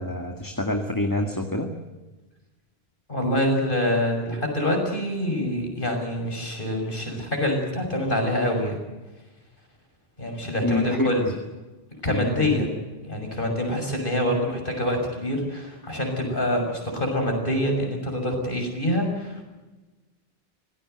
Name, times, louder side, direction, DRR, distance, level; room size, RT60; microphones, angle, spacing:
voice 1, 0.0-1.7 10.6-11.1 12.1-12.5, left 1 dB, 20° left, 4 dB, 2.0 m, -26 dB
voice 2, 3.1-8.8 10.2-11.3 12.0-12.7 13.0-19.4, left 1 dB, 55° left, 3 dB, 6.6 m, -25 dB
26.0 x 18.5 x 8.0 m, 1.2 s
omnidirectional pair, 1.0 m